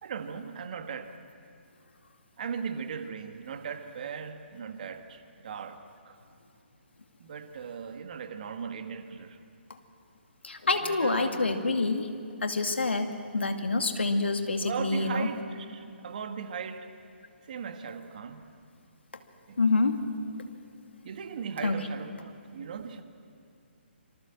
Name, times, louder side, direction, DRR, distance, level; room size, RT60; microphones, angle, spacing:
voice 1, 0.0-1.1 2.4-6.2 7.2-9.4 10.8-11.6 14.6-16.9 17.4-18.4 19.5-19.7 21.0-23.0, right 6 dB, 45° right, 7 dB, 1.9 m, -38 dB
voice 2, 10.4-12.1 12.4-15.3 19.6-20.0 21.6-21.7, left 3 dB, 70° left, 6 dB, 2.4 m, -27 dB
27.0 x 25.0 x 7.6 m, 2.5 s
figure-of-eight pair, 135°, 6 cm